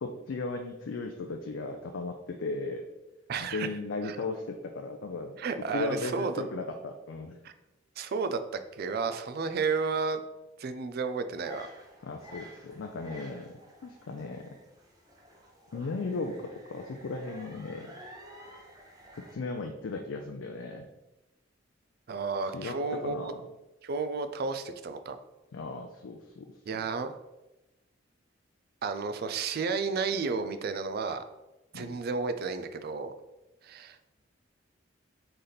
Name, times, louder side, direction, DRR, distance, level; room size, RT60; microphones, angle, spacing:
voice 1, 0.0-2.9 3.5-5.4 5.7-7.4 12.0-14.6 15.7-17.9 19.1-20.9 22.4-23.4 25.5-26.9 31.7-31.9, left 3 dB, 75° left, 4 dB, 0.4 m, -36 dB
voice 2, 3.3-3.7 4.1-4.2 5.4-6.4 7.4-7.5 8.0-8.4 8.8-10.2 10.6-11.7 22.1-23.3 23.8-25.2 26.7-27.2 28.8-31.2 31.7-33.1 33.6-34.0, right 4 dB, 55° right, 10 dB, 0.4 m, -32 dB
sound 1, 11.4-19.4, equal, 20° right, 0.7 m, -51 dB
4.1 x 3.3 x 3.9 m, 1.0 s
head